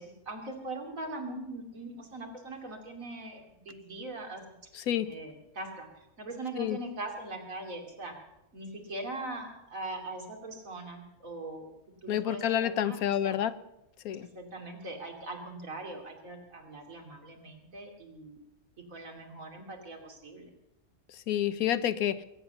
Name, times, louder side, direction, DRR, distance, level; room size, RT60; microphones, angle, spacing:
voice 1, 0.0-4.4 5.1-5.9 6.2-8.1 8.5-11.7 12.0-13.4 14.2-18.4 18.9-20.5, right 2 dB, 65° right, 2 dB, 3.1 m, -41 dB
voice 2, 4.7-5.1 6.6-6.8 12.1-13.5 14.0-14.3 21.3-22.2, left 10 dB, 85° left, 14 dB, 1.3 m, -29 dB
21.5 x 9.8 x 6.8 m, 0.89 s
omnidirectional pair, 1.5 m